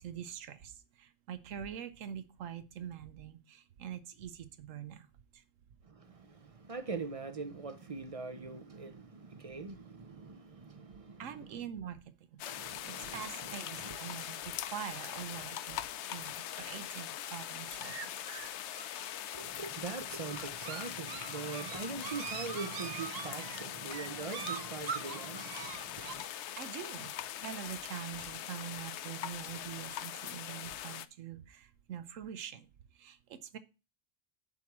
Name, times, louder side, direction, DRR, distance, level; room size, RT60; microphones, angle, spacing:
voice 1, 0.0-5.1 5.3-5.4 11.2-12.0 12.3-18.1 26.6-27.1 27.4-32.7 32.9-33.6, right 9 dB, 90° right, 1.1 m, -44 dB
voice 2, 5.8-11.6 12.4-14.0 19.3-26.3, right 4 dB, 40° right, 0.5 m, -43 dB
sound 1, 12.4-31.1, left 11 dB, 70° left, 0.8 m, -42 dB
sound 2, 17.8-26.1, right 7 dB, 55° right, 0.9 m, -43 dB
7.7 x 4.6 x 7.2 m
omnidirectional pair, 1.3 m